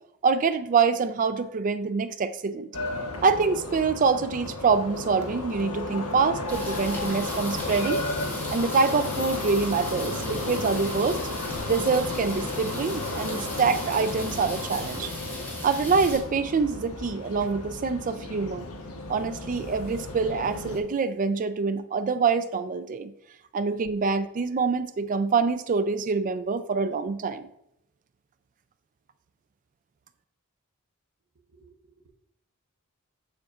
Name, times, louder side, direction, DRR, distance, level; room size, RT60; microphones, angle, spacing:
voice 1, 0.2-2.7 3.2-8.0 8.5-11.2 11.7-15.1 15.6-18.7 19.1-23.1 23.5-27.5, right 5 dB, 35° right, 12 dB, 0.3 m, -25 dB
sound 1, 2.7-20.8, left 2 dB, 90° left, 1.0 m, -33 dB
sound 2, 6.5-16.2, left 1 dB, 10° left, 1.5 m, -39 dB
voice 2, 31.5-32.1, right 4 dB, 70° right, 1 dB, 0.8 m, -58 dB
7.0 x 6.5 x 2.4 m, 0.79 s
head